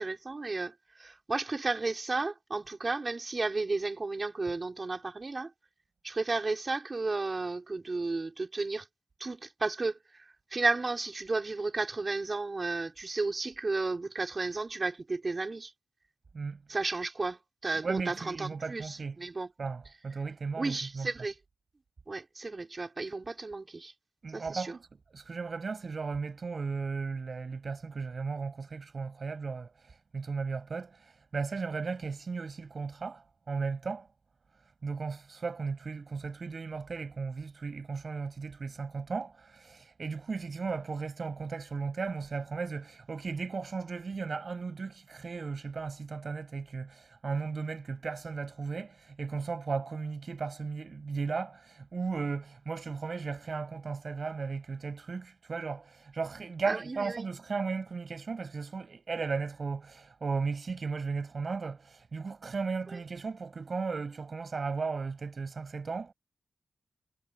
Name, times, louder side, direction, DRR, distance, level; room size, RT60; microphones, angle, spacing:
voice 1, 0.0-5.5 6.0-8.9 9.2-15.7 16.7-19.5 20.6-21.3 22.1-23.9 24.3-24.7 56.6-57.3 62.9-63.0, right 3 dB, 35° right, 4.3 m, -33 dB
voice 2, 17.7-19.2 19.6-21.1 24.2-29.7 30.1-34.1 34.8-66.1, right 4 dB, 55° right, 8.0 m, -36 dB
cardioid pair, 80°, 0 cm